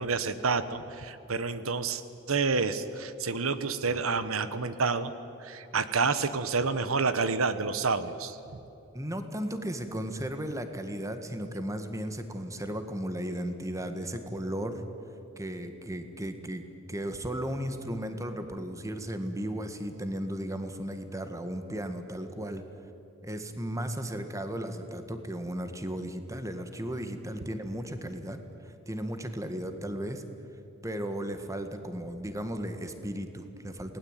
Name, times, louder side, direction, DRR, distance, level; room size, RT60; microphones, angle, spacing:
voice 1, 0.0-2.0 2.3-5.1 5.4-8.4, right 4 dB, 90° right, 12 dB, 1.2 m, -29 dB
voice 2, 8.9-14.8 15.4-16.6 16.9-22.6 23.2-30.2 30.8-34.0, equal, 15° right, 7 dB, 1.8 m, -35 dB
28.5 x 19.5 x 9.2 m, 2.9 s
head